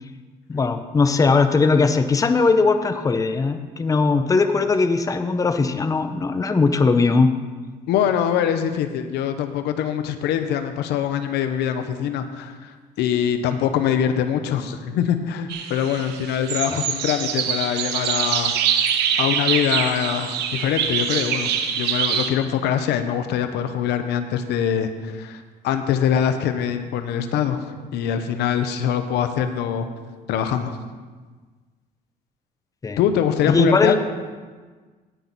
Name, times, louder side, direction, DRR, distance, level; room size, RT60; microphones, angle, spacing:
voice 1, 0.5-7.3 16.7-16.8 32.8-33.0 33.5-34.0, left 4 dB, 20° left, 9 dB, 0.6 m, -19 dB
voice 2, 7.9-18.6 18.8-18.9 19.2-29.9 30.3-30.7 33.0-34.0, left 9 dB, 80° left, 9 dB, 0.8 m, -23 dB
sound 1, 15.5-22.3, right 8 dB, 80° right, 1.0 m, -24 dB
17.0 x 6.0 x 4.1 m, 1.4 s
cardioid pair, 110°, 17 cm